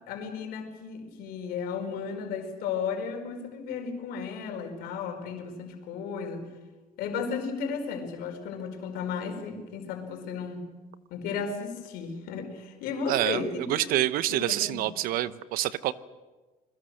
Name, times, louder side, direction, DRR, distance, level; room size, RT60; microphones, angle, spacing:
voice 1, 0.1-6.5 7.0-10.7 11.1-13.9 14.3-14.9, left 5 dB, 80° left, 4 dB, 4.8 m, -34 dB
voice 2, 13.1-15.9, right 14 dB, 70° right, 15 dB, 0.9 m, -27 dB
26.5 x 21.5 x 6.5 m, 1.3 s
cardioid pair, 155°, 16 cm